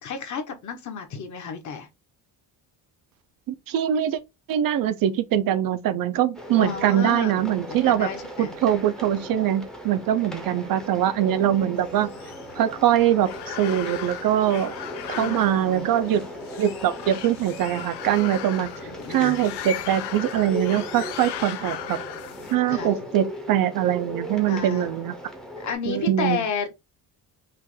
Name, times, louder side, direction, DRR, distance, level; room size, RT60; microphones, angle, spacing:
voice 1, 0.0-1.9 6.6-8.6 15.2-15.9 18.5-19.4 22.7-22.9 24.5-24.9 25.6-26.7, left 6 dB, 45° left, 1.2 m, -32 dB
voice 2, 3.5-4.2 4.5-8.1 8.4-12.1 12.6-14.7 15.1-16.3 16.6-18.7 19.1-22.0 22.5-25.1 25.9-26.4, right 11 dB, 55° right, 0.6 m, -23 dB
sound 1, 6.3-25.7, equal, ahead, 0.8 m, -37 dB
sound 2, 11.8-22.6, left 11 dB, 75° left, 0.9 m, -37 dB
5.6 x 2.5 x 3.8 m
cardioid pair, 180°, 41 cm